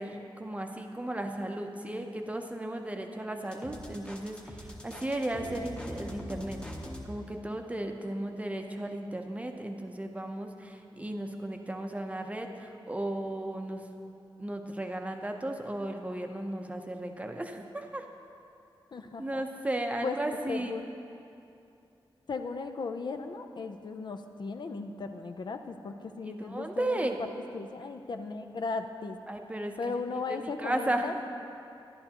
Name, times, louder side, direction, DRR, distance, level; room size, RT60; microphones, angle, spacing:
voice 1, 0.0-6.6 7.0-13.9 14.4-18.1 19.2-20.8 26.2-27.2 29.3-30.0 30.3-31.2, right 1 dB, 15° right, 4 dB, 0.6 m, -35 dB
sound 1, 3.5-7.1, equal, 10° left, 0.9 m, -42 dB
voice 2, 18.9-19.4 20.0-20.2 20.5-20.9 22.3-29.2 29.8-31.1, left 4 dB, 55° left, 6 dB, 0.4 m, -36 dB
11.0 x 11.0 x 2.9 m, 2.7 s
wide cardioid pair, 115°, 9 cm